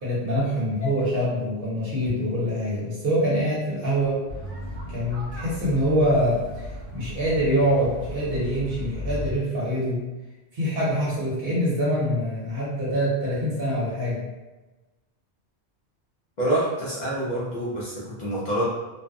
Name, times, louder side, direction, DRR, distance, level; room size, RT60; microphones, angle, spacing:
voice 1, 0.0-4.2 4.9-6.7 6.9-10.0 10.5-14.2, equal, 60° right, -7 dB, 1.2 m, -25 dB
sound 1, 4.3-9.4, equal, 85° right, 1.0 m, -36 dB
voice 2, 16.4-18.7, right 1 dB, 50° left, -7 dB, 0.6 m, -26 dB
2.5 x 2.2 x 2.5 m, 1.1 s
omnidirectional pair, 1.1 m